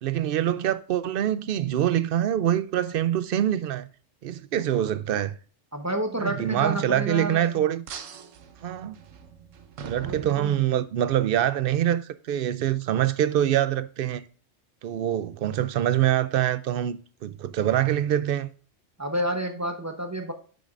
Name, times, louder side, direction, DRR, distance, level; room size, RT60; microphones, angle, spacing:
voice 1, 0.0-3.9 4.2-5.4 6.2-7.8 8.6-9.0 9.8-14.2 14.8-18.5, right 11 dB, 60° right, 0.6 m, -25 dB
voice 2, 5.7-7.4 10.0-10.5 19.0-20.3, right 1 dB, 15° right, 0.8 m, -29 dB
sound 1, 7.9-11.1, right 6 dB, 85° right, 1.2 m, -42 dB
8.2 x 6.0 x 2.5 m
omnidirectional pair, 1.3 m